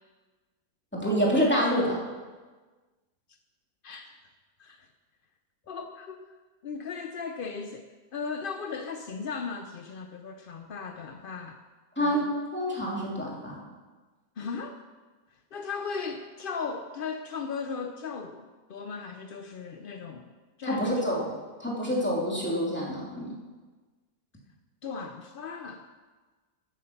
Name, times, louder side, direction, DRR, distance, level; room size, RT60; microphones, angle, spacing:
voice 1, 0.9-2.0 12.0-13.6 20.6-21.3 21.6-23.3, equal, 5° left, -4 dB, 2.7 m, -27 dB
voice 2, 3.8-4.2 4.6-4.9 5.7-6.3 6.6-7.8 8.1-11.6 12.0-12.4 14.4-14.8 15.5-20.3 20.6-21.2 21.9-22.0 24.8-25.9, left 5 dB, 65° left, 6 dB, 0.5 m, -37 dB
14.0 x 7.9 x 5.8 m, 1.3 s
omnidirectional pair, 1.7 m